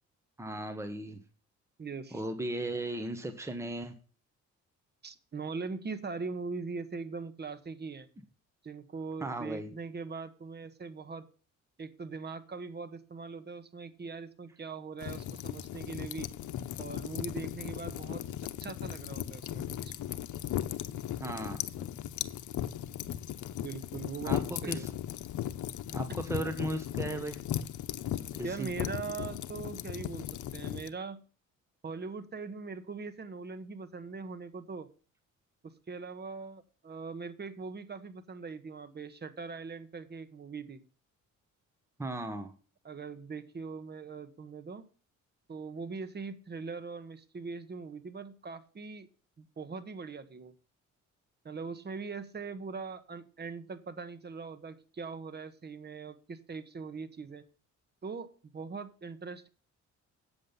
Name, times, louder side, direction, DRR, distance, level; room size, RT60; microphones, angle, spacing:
voice 1, 0.4-1.2 2.1-3.9 9.2-9.7 21.2-21.9 24.2-24.9 25.9-27.4 28.3-28.7 42.0-42.5, right 1 dB, 10° right, 7 dB, 1.4 m, -36 dB
voice 2, 1.8-2.2 5.0-8.1 8.6-11.3 11.8-16.3 16.8-18.2 18.6-19.9 23.6-24.9 26.1-26.2 28.4-31.2 31.8-34.9 35.6-40.8 42.8-44.8 45.5-49.1 49.4-50.5 51.4-57.4 58.0-59.5, right 4 dB, 35° right, 11 dB, 1.5 m, -41 dB
sound 1, 15.0-30.9, left 11 dB, 75° left, 0.9 m, -37 dB
8.7 x 7.8 x 5.4 m, 0.37 s
cardioid pair, 90°, 30 cm